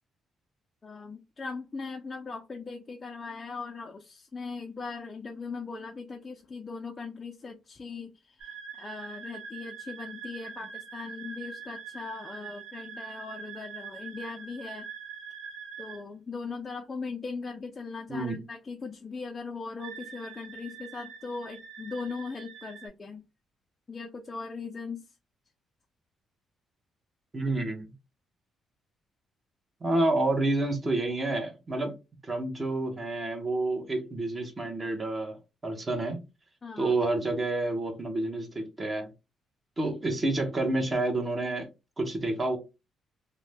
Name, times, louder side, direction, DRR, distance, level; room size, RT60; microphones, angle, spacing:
voice 1, 0.8-14.9 15.8-23.2 23.9-25.1 36.6-37.0, left 4 dB, 30° left, 0.4 m, -39 dB
sound 1, 8.4-16.0 19.8-22.9, right 6 dB, 80° right, 0.8 m, -43 dB
voice 2, 18.1-18.4 27.3-27.9 29.8-31.9 32.2-35.4 35.6-36.2 36.8-39.1 39.8-41.7 42.0-42.6, right 2 dB, 25° right, 0.9 m, -29 dB
2.5 x 2.1 x 3.3 m
cardioid pair, 90°, 0 cm